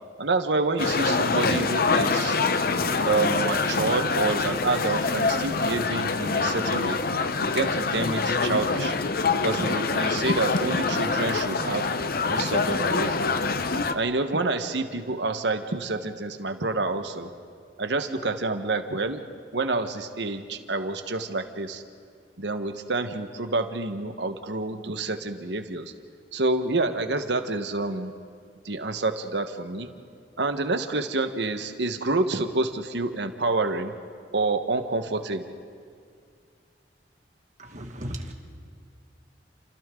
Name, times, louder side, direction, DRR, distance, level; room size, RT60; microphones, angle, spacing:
voice 1, 0.2-2.4 3.1-7.0 7.4-8.9 9.3-11.9 12.3-13.3 13.9-17.3 17.8-19.2 19.5-21.8 22.4-25.9 26.3-28.1 28.6-29.9 30.4-33.9 34.3-35.5, right 3 dB, 80° right, 7 dB, 1.3 m, -28 dB
sound 1, 0.8-13.9, left 4 dB, 60° left, 0.9 m, -25 dB
voice 2, 37.6-38.3, equal, 45° right, 2 dB, 2.1 m, -36 dB
29.0 x 28.0 x 3.8 m, 2.2 s
head